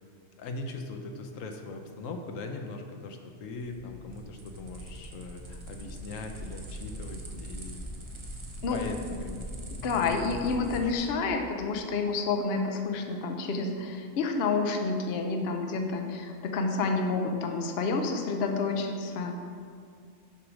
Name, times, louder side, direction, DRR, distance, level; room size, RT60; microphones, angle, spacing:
voice 1, 0.4-7.9 8.7-10.4 10.7-10.9, left 3 dB, 80° left, 4 dB, 1.1 m, -40 dB
sound 1, 3.6-11.1, equal, 25° right, 0.8 m, -41 dB
voice 2, 8.6-8.9 9.8-19.3, left 4 dB, 55° left, 4 dB, 0.9 m, -29 dB
6.9 x 4.8 x 6.1 m, 2.2 s
omnidirectional pair, 1.4 m